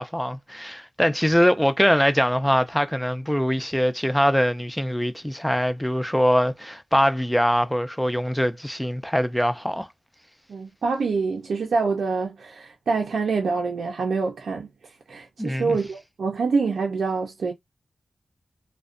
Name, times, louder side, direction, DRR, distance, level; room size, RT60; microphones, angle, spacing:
voice 1, 0.0-9.9 15.4-15.8, equal, 5° left, 0.3 m, -22 dB
voice 2, 10.5-17.5, right 4 dB, 90° right, 0.4 m, -26 dB
2.4 x 2.1 x 2.4 m
wide cardioid pair, 90°, 0 cm